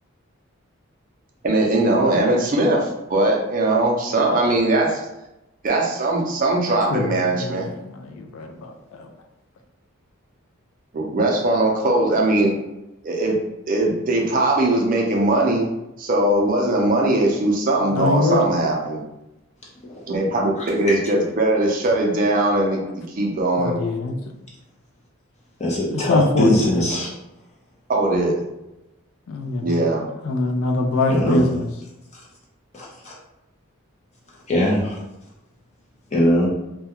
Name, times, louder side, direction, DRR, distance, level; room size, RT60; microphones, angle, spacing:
voice 1, 1.4-5.0 5.6-7.7 10.9-12.5 13.0-13.4 13.7-15.7 16.0-19.0 20.1-22.8 23.2-23.8 27.9-28.3 29.6-30.0, right 2 dB, 40° right, 0 dB, 0.4 m, -20 dB
voice 2, 6.9-9.1 17.9-18.5 23.6-24.1 25.9-26.8 29.3-29.7 30.2-31.7, left 3 dB, 75° left, 4 dB, 0.3 m, -24 dB
voice 3, 20.6-20.9 25.6-27.1 31.1-31.5 32.7-33.1 34.5-35.0 36.1-36.5, left 1 dB, 30° left, -4 dB, 0.6 m, -21 dB
2.3 x 2.2 x 2.8 m, 0.93 s
head